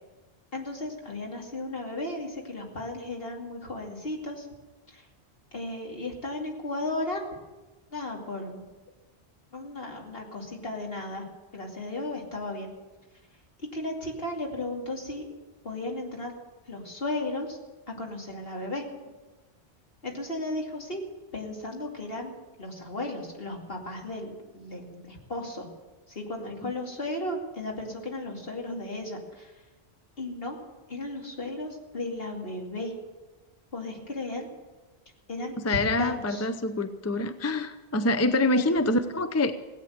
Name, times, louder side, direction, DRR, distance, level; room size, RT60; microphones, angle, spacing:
voice 1, 0.5-4.5 4.9-5.1 5.5-7.2 7.9-8.6 9.5-11.2 11.5-12.7 13.7-15.2 15.6-16.3 16.7-17.6 18.0-18.8 20.0-21.0 21.3-25.7 26.1-29.5 30.2-30.6 30.9-32.9 33.7-34.5 35.3-36.5 38.6-38.9, left 2 dB, 65° left, 0 dB, 2.8 m, -35 dB
voice 2, 35.6-39.5, left 2 dB, 20° left, 9 dB, 0.5 m, -26 dB
17.5 x 8.9 x 7.8 m, 1.2 s
omnidirectional pair, 1.1 m